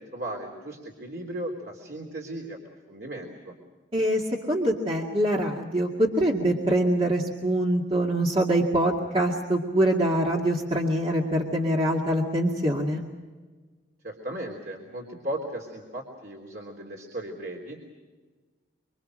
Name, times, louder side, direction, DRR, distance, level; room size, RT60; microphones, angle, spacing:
voice 1, 0.0-2.6 2.9-3.5 14.0-17.9, right 1 dB, 55° right, 1 dB, 3.3 m, -36 dB
voice 2, 3.9-4.2 4.5-13.0, right 1 dB, 30° right, -2 dB, 2.2 m, -24 dB
25.5 x 25.5 x 6.4 m, 1.3 s
head